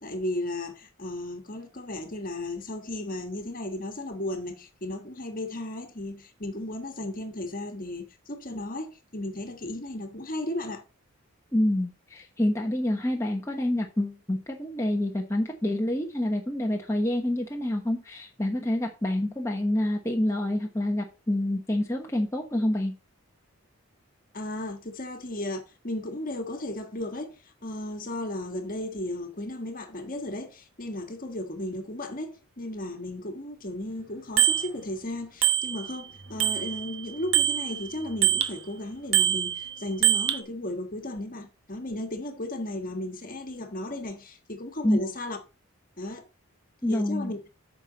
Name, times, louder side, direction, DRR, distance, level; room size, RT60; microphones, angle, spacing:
voice 1, 0.0-10.8 24.3-45.4 46.0-46.3 46.9-47.4, left 1 dB, 40° left, 1.5 m, -35 dB
voice 2, 11.5-22.9 44.8-45.0 46.8-47.3, left 1 dB, 15° left, 1.0 m, -27 dB
Bicycle bell, 34.4-34.7 35.4-36.1 36.4-38.6 39.1-40.4, right 11 dB, 65° right, 1.1 m, -24 dB
9.1 x 6.1 x 4.1 m
head